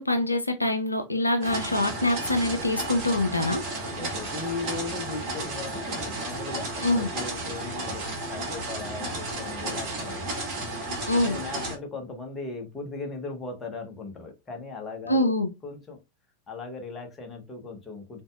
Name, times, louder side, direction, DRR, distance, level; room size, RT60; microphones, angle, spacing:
voice 1, 0.0-3.6 6.8-7.1 11.1-11.4 15.1-15.5, left 1 dB, 85° left, 0.4 m, -24 dB
sound 1, 1.4-11.8, right 2 dB, 40° right, 1.3 m, -33 dB
voice 2, 3.8-10.3 11.2-15.3 15.6-16.0 16.5-18.2, left 3 dB, 20° left, 1.0 m, -38 dB
3.8 x 2.6 x 2.4 m
figure-of-eight pair, 90°, 0 cm